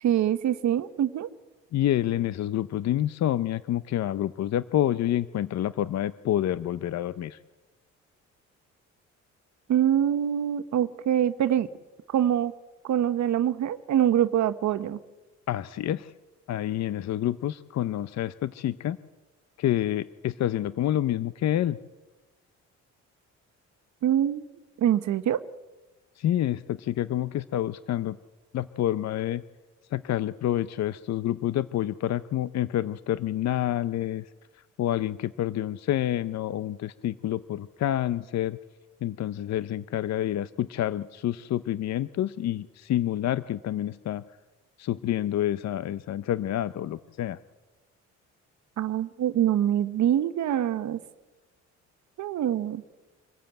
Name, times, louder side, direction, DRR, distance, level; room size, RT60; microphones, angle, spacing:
voice 1, 0.0-1.3 9.7-11.7 12.1-12.5 12.8-15.0 24.0-24.4 24.8-25.4 48.8-51.0 52.2-52.8, right 10 dB, 70° right, 12 dB, 1.0 m, -24 dB
voice 2, 1.7-7.4 15.5-16.1 16.5-19.0 19.6-21.8 26.2-28.2 28.5-29.4 29.9-34.2 34.8-38.6 39.0-44.2 44.8-47.4, left 12 dB, 60° left, 15 dB, 0.7 m, -28 dB
25.5 x 15.0 x 9.0 m, 1.2 s
cardioid pair, 90°, 30 cm